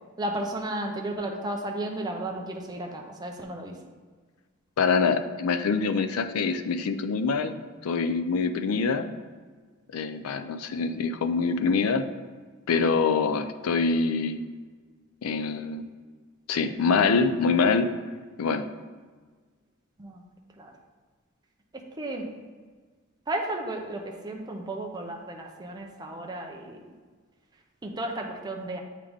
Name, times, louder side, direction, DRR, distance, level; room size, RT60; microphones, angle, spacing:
voice 1, 0.2-3.7 20.0-20.2 20.6-20.7 22.0-22.3 23.3-26.8 27.8-28.8, right 1 dB, 20° right, 1 dB, 0.5 m, -33 dB
voice 2, 4.8-7.6 7.8-9.1 9.9-12.1 12.7-14.4 15.2-15.8 16.5-17.9 18.4-18.7, left 4 dB, 90° left, 9 dB, 0.4 m, -25 dB
8.1 x 3.7 x 3.5 m, 1.5 s
head